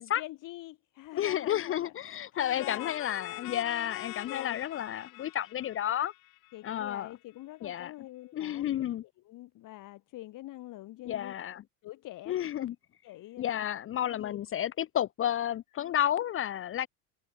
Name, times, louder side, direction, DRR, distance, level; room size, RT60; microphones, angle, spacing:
voice 1, 0.0-2.9 4.3-4.6 6.5-11.4 11.8-12.7 13.0-13.7 14.1-14.4 15.7-15.9, left 16 dB, 50° left, 2.0 m, -46 dB
voice 2, 1.1-6.1 6.6-7.1 7.6-7.9 8.3-9.0 11.1-11.6 12.3-12.7 13.4-16.9, left 11 dB, 30° left, 0.7 m, -31 dB
sound 1, 2.4-6.9, left 25 dB, 85° left, 5.5 m, -44 dB
cardioid pair, 135°, 42 cm